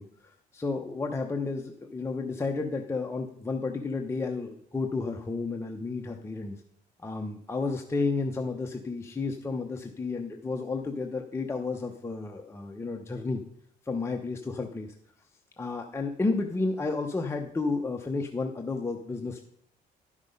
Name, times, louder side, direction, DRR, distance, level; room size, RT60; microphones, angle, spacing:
voice 1, 0.0-6.6 7.0-13.4 13.8-14.9 15.6-19.4, left 3 dB, 15° left, 3 dB, 0.8 m, -32 dB
11.5 x 6.0 x 5.3 m, 0.71 s
cardioid pair, 110°, 17 cm